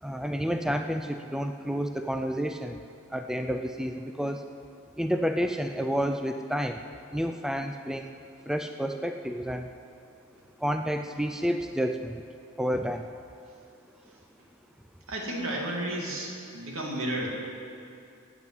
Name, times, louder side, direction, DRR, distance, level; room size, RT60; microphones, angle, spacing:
voice 1, 0.0-2.8 3.1-4.4 5.0-6.8 7.1-8.1 8.5-9.7 10.6-12.2 12.6-13.1, equal, ahead, 6 dB, 0.4 m, -30 dB
voice 2, 15.1-17.3, right 1 dB, 65° right, -1 dB, 2.5 m, -32 dB
13.5 x 9.1 x 7.9 m, 2.5 s
head